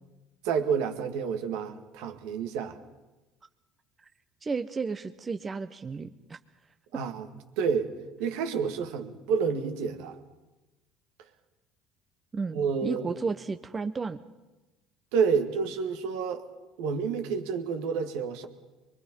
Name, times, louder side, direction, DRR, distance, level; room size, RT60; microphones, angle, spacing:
voice 1, 0.4-2.8 6.9-7.3 7.6-7.9 8.2-10.2 12.5-13.2 15.1-16.5 16.8-18.5, right 6 dB, 75° right, 6 dB, 2.1 m, -29 dB
voice 2, 4.4-6.4 6.9-7.0 12.3-14.2, right 4 dB, 30° right, 9 dB, 1.0 m, -33 dB
23.5 x 23.5 x 5.5 m, 1.1 s
hypercardioid pair, 70°, 0 cm